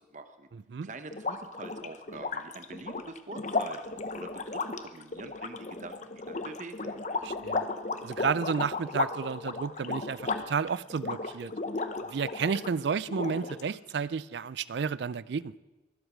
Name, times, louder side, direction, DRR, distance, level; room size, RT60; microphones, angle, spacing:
voice 1, 0.0-0.5 0.8-7.0, right 3 dB, 40° right, 0.8 m, -45 dB
voice 2, 0.5-0.9 7.2-7.6 8.0-11.5 12.1-15.5, right 6 dB, 65° right, 0.4 m, -32 dB
sound 1, 1.1-12.7 13.1-13.9, left 3 dB, 40° left, 0.8 m, -35 dB
23.0 x 8.0 x 6.4 m
head